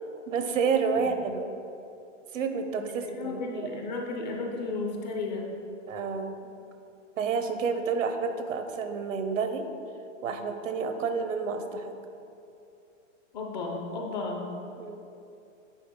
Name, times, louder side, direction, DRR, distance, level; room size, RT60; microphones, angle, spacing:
voice 1, 0.3-1.5 2.3-3.4 3.7-3.8 5.9-6.5 7.2-9.7 10.2-11.9 14.8-15.0, right 5 dB, 85° right, 7 dB, 0.8 m, -29 dB
voice 2, 3.1-5.5 13.3-14.6, left 3 dB, 35° left, 1 dB, 0.8 m, -33 dB
9.2 x 4.3 x 3.8 m, 2.7 s
hypercardioid pair, 165°, 38 cm